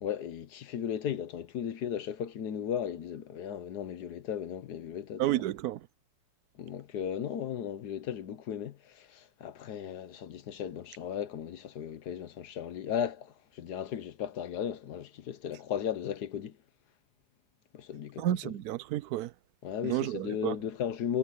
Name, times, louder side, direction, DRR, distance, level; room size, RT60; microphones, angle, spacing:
voice 1, 0.0-5.2 6.6-16.6 17.7-18.5 19.6-21.2, left 9 dB, 80° left, 1.5 m, -36 dB
voice 2, 5.2-5.9 18.2-19.3 19.8-20.6, right 13 dB, 75° right, 1.1 m, -31 dB
omnidirectional pair, 1.7 m